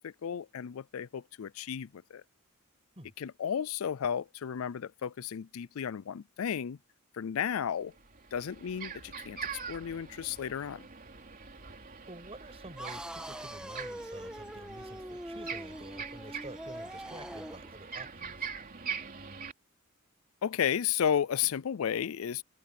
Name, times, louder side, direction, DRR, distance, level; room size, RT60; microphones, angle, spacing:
voice 1, 0.0-2.2 3.2-6.8 7.1-7.9 8.3-9.4 9.7-10.8 20.4-22.4, left 8 dB, 80° left, 0.4 m, -33 dB
sound 1, 7.4-7.5 7.9-19.5, right 6 dB, 45° right, 3.3 m, -43 dB
voice 2, 12.1-18.5, right 1 dB, 30° right, 7.2 m, -49 dB
sound 2, 12.8-17.7, equal, 5° right, 1.8 m, -43 dB
open air
head